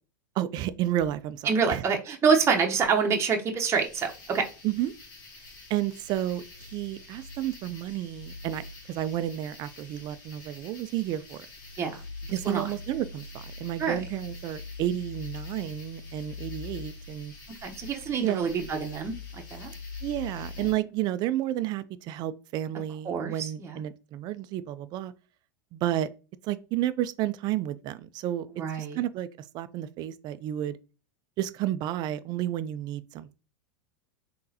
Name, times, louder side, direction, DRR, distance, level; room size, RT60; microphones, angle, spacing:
voice 1, 0.4-1.8 4.6-4.9 5.7-6.4 6.7-11.5 12.3-13.3 13.6-17.3 18.2-18.5 20.0-25.1 25.7-26.1 26.4-28.5 28.8-29.3 29.5-30.8 31.4-33.3, right 12 dB, 40° right, 0.4 m, -31 dB
voice 2, 1.4-4.4 11.8-12.0 12.4-12.7 13.8-14.0 17.6-19.7 23.0-23.8 28.6-29.0, right 5 dB, 25° right, 0.9 m, -26 dB
sound 1, 3.7-20.7, left 3 dB, 70° left, 2.0 m, -44 dB
3.8 x 3.8 x 2.7 m
hypercardioid pair, 100°, 11 cm